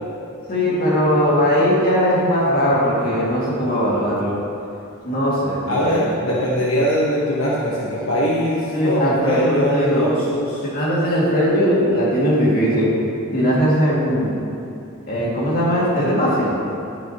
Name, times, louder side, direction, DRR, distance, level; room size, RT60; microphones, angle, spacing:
voice 1, 0.5-4.4 5.0-6.3 8.7-10.1 10.7-12.9 13.3-14.4 15.1-16.6, equal, 45° left, -6 dB, 2.2 m, -19 dB
voice 2, 5.7-10.6, equal, 70° left, -5 dB, 1.1 m, -21 dB
11.0 x 9.4 x 2.9 m, 2.7 s
head